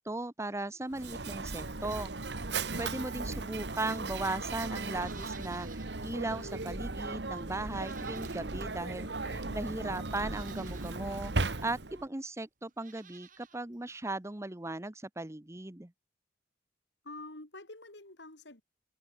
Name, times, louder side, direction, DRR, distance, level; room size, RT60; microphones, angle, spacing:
voice 1, 0.0-2.1 2.8-15.9, right 2 dB, 15° right, 0.9 m, -37 dB
Mechanisms, 0.9-12.1, right 3 dB, 70° right, 1.6 m, -37 dB
Livestock farm animals working animals, 4.9-6.0 6.4-6.5 7.7-8.7 9.6-9.7 10.2-11.0 12.7-13.6 13.9-14.0, right 8 dB, 50° right, 7.9 m, -55 dB
voice 2, 9.1-9.6 17.0-18.6, left 2 dB, 75° left, 4.5 m, -48 dB
head